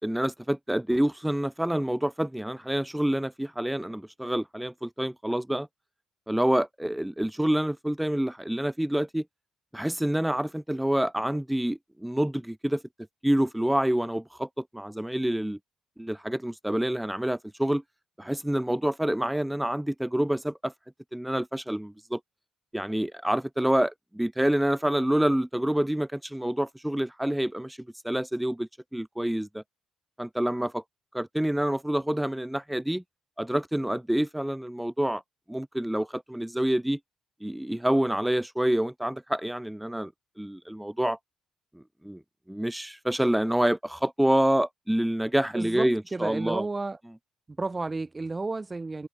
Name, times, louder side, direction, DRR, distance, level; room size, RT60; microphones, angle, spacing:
voice 1, 0.0-5.7 6.3-9.2 9.7-12.8 13.2-15.6 16.0-17.8 18.2-20.7 21.1-22.2 22.7-27.8 28.0-29.6 30.2-30.8 31.1-33.0 33.4-35.2 35.5-37.0 37.4-40.1 40.4-41.2 41.7-42.2 42.5-46.6, right 1 dB, 5° right, 1.5 m, -27 dB
voice 2, 45.5-47.0 47.5-49.1, right 3 dB, 20° right, 1.8 m, -32 dB
cardioid pair, 90°, 0 cm